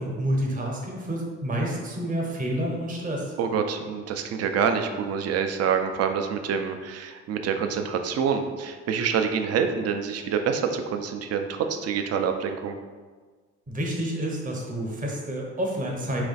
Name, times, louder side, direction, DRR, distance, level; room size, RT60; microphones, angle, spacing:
voice 1, 0.0-3.3 13.7-16.2, right 1 dB, 25° right, -1 dB, 0.8 m, -29 dB
voice 2, 3.4-12.8, right 6 dB, 55° right, 6 dB, 0.4 m, -26 dB
3.2 x 2.4 x 3.9 m, 1.4 s
cardioid pair, 90°, 30 cm